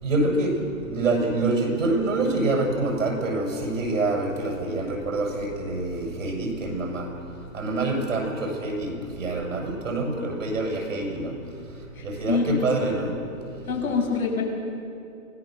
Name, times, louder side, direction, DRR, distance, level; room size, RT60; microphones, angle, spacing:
voice 1, 0.0-7.1 7.5-11.4 12.0-13.1, right 2 dB, 65° right, 1 dB, 7.1 m, -26 dB
voice 2, 12.0-12.5 13.7-14.4, left 4 dB, 80° left, 1 dB, 6.6 m, -25 dB
25.5 x 17.5 x 6.8 m, 2.7 s
hypercardioid pair, 175°, 42 cm